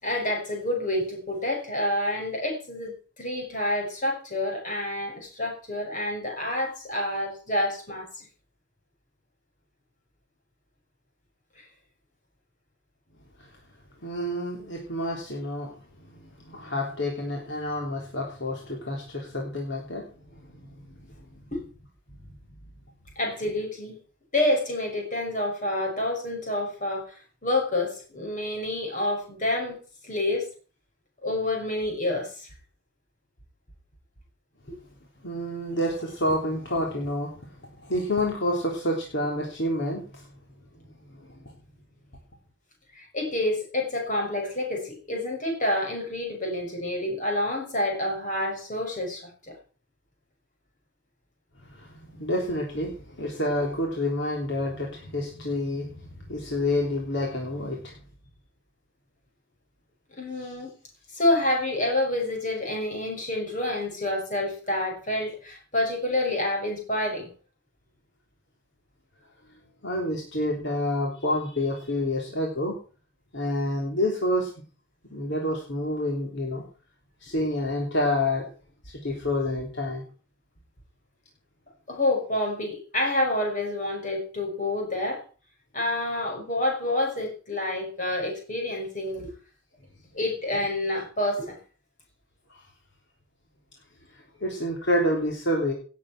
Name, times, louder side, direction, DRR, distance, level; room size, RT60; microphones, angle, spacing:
voice 1, 0.0-8.3 11.6-11.7 21.5-21.6 23.2-24.0 24.3-29.8 30.0-30.5 31.2-32.5 34.7-34.8 42.9-49.6 60.2-60.7 61.1-67.3 81.9-85.2 85.7-89.3 90.1-91.6, left 1 dB, 35° left, 1 dB, 6.1 m, -28 dB
voice 2, 14.0-15.7 16.1-21.0 22.1-22.5 35.2-37.5 37.8-40.3 41.4-41.5 51.7-57.9 60.4-60.5 69.8-72.8 73.3-74.5 75.1-76.6 77.2-78.4 78.8-80.0 92.5-92.6 94.4-95.7, left 1 dB, 55° left, 0 dB, 3.3 m, -28 dB
18.0 x 8.4 x 6.0 m, 0.38 s
head